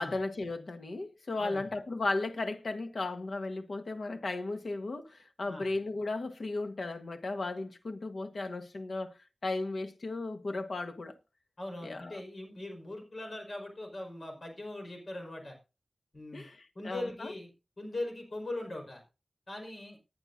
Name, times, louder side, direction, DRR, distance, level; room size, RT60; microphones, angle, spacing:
voice 1, 0.0-9.2 9.4-11.2 11.8-12.2 16.3-17.3, left 2 dB, 75° left, 1.4 m, -35 dB
voice 2, 11.6-15.6 16.1-16.4 16.7-17.5 17.8-19.0 19.5-20.0, left 2 dB, 55° left, 5.2 m, -40 dB
19.0 x 10.0 x 2.7 m
wide cardioid pair, 95°, 0 cm